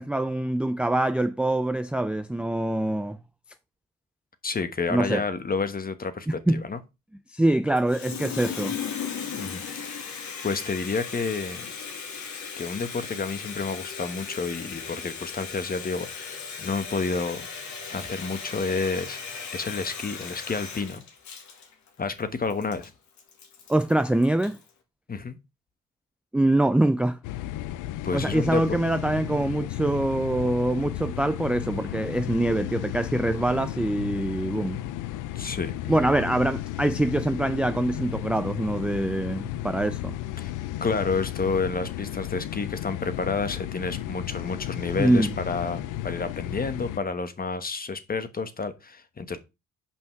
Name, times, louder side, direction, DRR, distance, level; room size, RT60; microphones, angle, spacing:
voice 1, 0.0-3.2 4.9-5.2 6.3-6.6 7.3-8.8 23.7-24.6 26.3-27.2 28.1-34.8 35.9-40.1 45.0-45.3, right 1 dB, 5° right, 0.4 m, -24 dB
voice 2, 4.4-6.8 9.3-10.0 10.4-11.7 12.6-17.4 17.9-19.2 19.5-21.0 22.0-22.9 25.1-25.4 28.0-28.6 35.3-35.7 40.4-40.5 40.8-49.4, left 4 dB, 30° left, 1.3 m, -30 dB
Water tap faucet, 7.8-24.7, left 6 dB, 70° left, 2.2 m, -37 dB
sound 1, 27.2-47.0, left 13 dB, 90° left, 0.6 m, -34 dB
5.8 x 5.3 x 5.8 m
cardioid pair, 90°, 30 cm